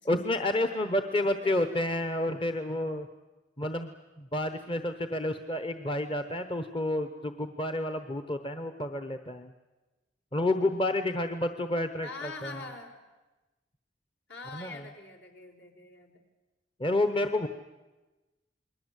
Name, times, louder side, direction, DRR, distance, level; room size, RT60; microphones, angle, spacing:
voice 1, 0.0-3.1 3.6-9.5 10.3-12.6 14.5-14.8 16.8-17.5, left 1 dB, 30° left, 9 dB, 1.0 m, -30 dB
voice 2, 1.1-2.1 12.0-13.0 14.3-16.2, left 3 dB, 70° left, 3 dB, 4.7 m, -45 dB
29.0 x 21.5 x 8.2 m, 1.1 s
head